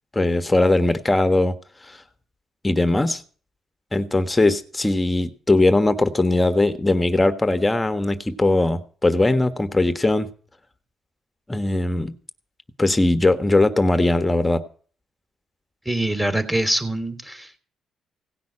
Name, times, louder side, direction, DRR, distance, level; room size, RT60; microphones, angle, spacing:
voice 1, 0.1-1.5 1.8-2.0 2.6-3.2 3.9-10.3 11.5-12.1 12.8-14.6, left 2 dB, 15° left, 10 dB, 1.4 m, -20 dB
voice 2, 15.8-17.6, right 1 dB, 10° right, 10 dB, 3.0 m, -24 dB
17.5 x 6.0 x 9.9 m, 0.43 s
cardioid pair, 90°, 0 cm